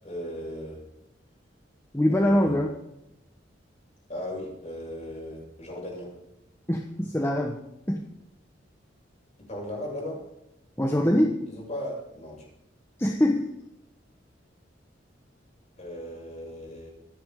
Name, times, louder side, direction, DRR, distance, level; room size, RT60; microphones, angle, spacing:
voice 1, 0.0-0.8 2.1-2.6 4.1-6.1 9.4-10.2 11.5-12.4 15.8-16.9, left 1 dB, 40° left, -2 dB, 6.7 m, -37 dB
voice 2, 1.9-2.8 6.7-7.6 7.9-8.0 10.8-11.4 13.0-13.4, equal, 15° left, 1 dB, 1.2 m, -23 dB
25.5 x 9.9 x 3.8 m, 0.86 s
head